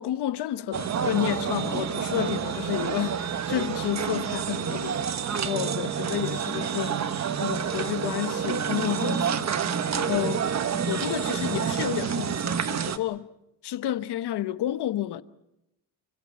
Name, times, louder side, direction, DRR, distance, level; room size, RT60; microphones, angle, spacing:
voice 1, 0.0-6.9 7.4-9.4 9.9-10.4 10.9-13.3 13.6-15.2, left 13 dB, 60° left, 1.0 m, -30 dB
sound 1, 0.7-13.0, right 7 dB, 35° right, 1.1 m, -28 dB
sound 2, 0.9-3.9, right 4 dB, 70° right, 4.1 m, -47 dB
27.5 x 16.0 x 8.6 m
cardioid pair, 140°, 44 cm